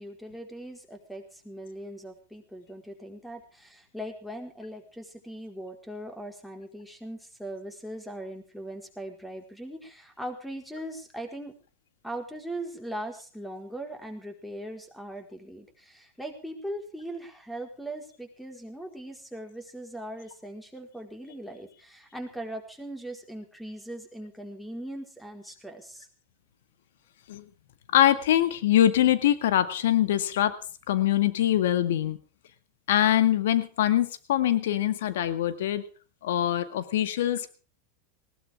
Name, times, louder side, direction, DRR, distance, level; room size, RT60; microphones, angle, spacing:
voice 1, 0.0-11.5 12.0-26.1, right 1 dB, ahead, 5 dB, 4.5 m, -40 dB
voice 2, 27.9-30.6 30.9-32.2 32.9-35.8 36.2-37.5, left 12 dB, 75° left, 12 dB, 2.0 m, -23 dB
19.5 x 17.0 x 3.6 m, 0.35 s
hypercardioid pair, 105°, 0 cm